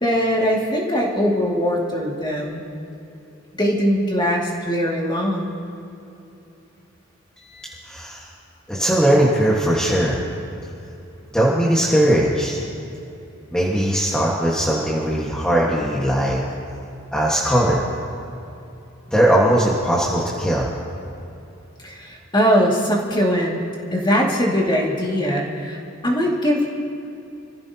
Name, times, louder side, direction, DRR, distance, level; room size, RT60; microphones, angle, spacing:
voice 1, 0.0-2.6 3.6-5.5 21.8-23.6 23.9-26.6, equal, 20° left, -2 dB, 2.2 m, -21 dB
voice 2, 7.4-8.3 8.7-10.2 11.3-12.6 13.5-16.4 17.1-17.8 19.1-20.7, right 1 dB, 5° left, -6 dB, 1.5 m, -19 dB
26.0 x 15.0 x 2.9 m, 2.8 s
head